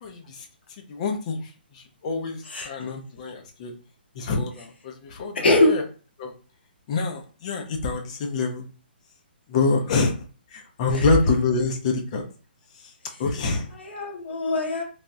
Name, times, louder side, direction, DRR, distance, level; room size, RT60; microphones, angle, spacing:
voice 1, 0.0-0.5 0.9-1.4 1.7-3.7 4.1-5.8 6.2-6.3 6.9-8.6 9.5-10.1 10.5-12.2 12.8-12.9 13.2-13.7, left 4 dB, 40° left, 4 dB, 0.6 m, -26 dB
voice 2, 5.3-5.8 9.9-10.0 11.0-11.1 13.8-14.8, left 2 dB, 75° left, 0 dB, 1.2 m, -22 dB
3.4 x 2.3 x 2.6 m, 0.37 s
hypercardioid pair, 150°, 6 cm